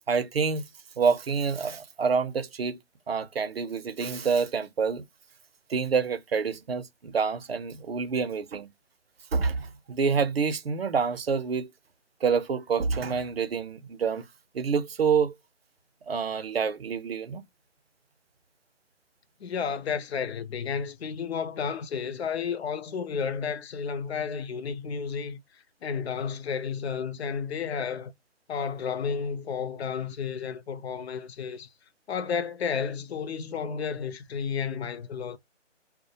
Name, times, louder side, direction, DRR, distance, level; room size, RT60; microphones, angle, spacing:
voice 1, 0.1-0.7 1.0-2.8 3.1-5.0 5.7-8.7 9.3-11.7 12.2-14.3 14.5-15.3 16.1-17.4, right 5 dB, 55° right, 0.5 m, -27 dB
voice 2, 19.4-25.4 25.8-28.1 28.5-31.7 32.1-35.4, left 6 dB, 60° left, 0.5 m, -32 dB
2.3 x 2.0 x 2.7 m
hypercardioid pair, 170°, 36 cm